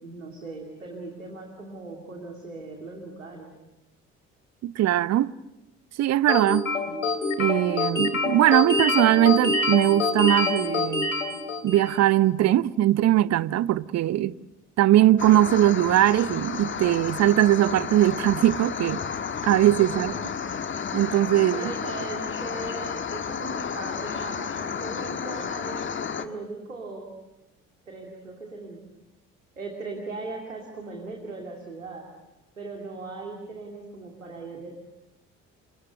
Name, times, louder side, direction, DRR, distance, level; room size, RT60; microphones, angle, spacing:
voice 1, 0.0-3.5 19.8-20.1 21.5-25.9 26.2-27.1 27.9-28.8 29.6-32.1 32.6-34.7, right 3 dB, 85° right, 2.6 m, -38 dB
voice 2, 4.6-5.3 6.0-6.7 7.4-11.1 11.6-14.3 14.8-19.0 19.4-20.1 20.9-21.7, right 13 dB, 45° right, 0.8 m, -20 dB
sound 1, 6.3-12.0, left 3 dB, 85° left, 2.5 m, -26 dB
sound 2, 15.2-26.3, left 6 dB, 30° left, 1.7 m, -32 dB
28.5 x 26.5 x 6.8 m
figure-of-eight pair, 50°, 38 cm